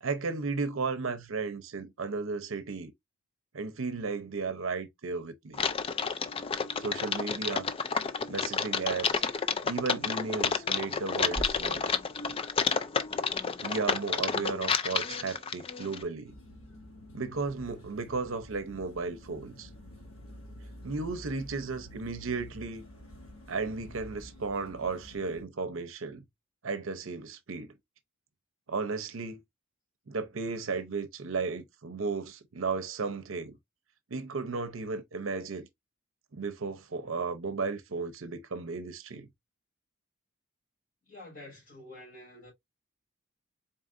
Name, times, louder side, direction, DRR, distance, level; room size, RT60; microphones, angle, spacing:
voice 1, 0.0-2.9 3.5-5.7 6.8-7.7 8.3-9.2 9.6-12.0 13.6-16.3 17.1-19.7 20.8-22.8 23.5-26.2 26.6-27.8 28.7-29.4 30.1-33.6 34.1-35.7 36.3-39.3, right 4 dB, 65° right, 0.7 m, -34 dB
Typing, 5.5-16.0, left 6 dB, 25° left, 0.3 m, -30 dB
sound 1, 11.3-13.4, right 1 dB, 20° right, 0.9 m, -42 dB
sound 2, 16.2-25.4, left 1 dB, 80° left, 1.8 m, -49 dB
voice 2, 41.1-42.5, left 1 dB, 45° left, 3.2 m, -48 dB
4.0 x 3.7 x 2.5 m
head